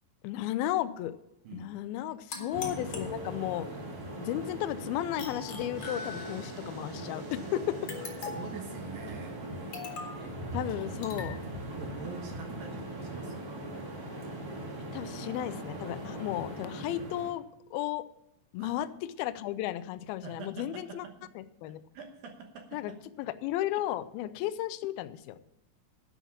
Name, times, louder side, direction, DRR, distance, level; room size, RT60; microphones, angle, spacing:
voice 1, 0.2-1.1 1.5-3.7 4.2-7.8 10.5-11.4 14.9-17.5 17.7-18.0 18.5-18.9 19.2-21.1 21.4-21.8 22.7-22.9 23.2-25.4, left 13 dB, 80° left, 13 dB, 2.2 m, -34 dB
sound 1, 2.3-3.7 5.2-6.6 7.9-8.6 9.7-10.3 11.0-11.4, left 5 dB, 50° left, 2.6 m, -41 dB
sound 2, 2.5-17.3, right 1 dB, 30° right, 2.2 m, -40 dB
sound 3, 5.7-9.6, right 3 dB, 50° right, 3.1 m, -53 dB
voice 2, 8.1-9.8 10.2-10.3 11.8-13.6 18.6-18.7 20.2-21.3 21.9-23.0, right 5 dB, 70° right, 3 dB, 2.6 m, -45 dB
11.0 x 7.2 x 7.3 m, 0.88 s
omnidirectional pair, 4.9 m